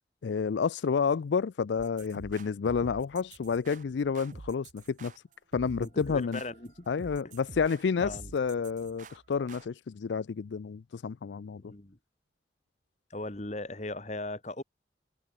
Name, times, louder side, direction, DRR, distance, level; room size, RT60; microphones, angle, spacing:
voice 1, 0.2-5.1 5.5-6.4 6.9-11.6, left 5 dB, 80° left, 0.4 m, -30 dB
sound 1, 1.8-9.7, right 3 dB, 45° right, 0.6 m, -48 dB
voice 2, 5.8-6.9 8.0-8.3 11.6-12.0 13.1-14.6, left 2 dB, 40° left, 1.6 m, -38 dB
head